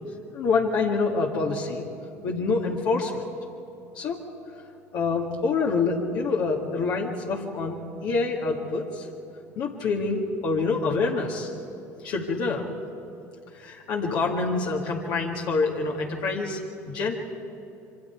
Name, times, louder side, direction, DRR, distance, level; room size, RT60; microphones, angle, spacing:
voice 1, 0.3-1.9 2.2-3.2 3.9-4.2 4.9-9.1 9.6-11.5 12.0-12.7 13.5-17.2, left 4 dB, 60° left, -1 dB, 2.1 m, -26 dB
26.0 x 25.0 x 4.7 m, 2.8 s
hypercardioid pair, 70°, 8 cm